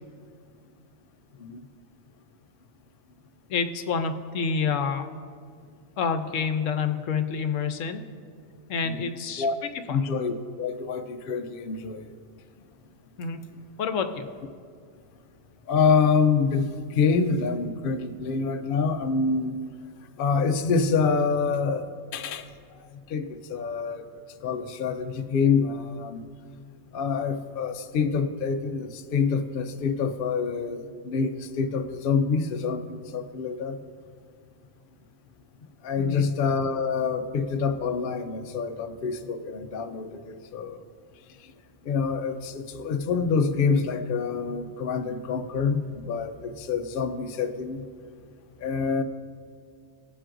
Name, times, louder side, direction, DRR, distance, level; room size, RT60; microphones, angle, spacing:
voice 1, 3.5-5.1 6.0-8.0 8.7-9.5 9.9-10.0 13.2-13.4 13.8-14.3 36.0-36.3, left 5 dB, 75° left, 8 dB, 1.0 m, -28 dB
voice 2, 9.9-12.2 15.7-19.5 20.2-22.5 23.1-24.0 24.4-26.2 26.9-33.8 35.8-40.8 41.4-41.5 41.8-47.8 48.6-49.0, left 5 dB, 55° left, 7 dB, 0.6 m, -26 dB
20.0 x 7.4 x 2.6 m, 2.2 s
omnidirectional pair, 1.4 m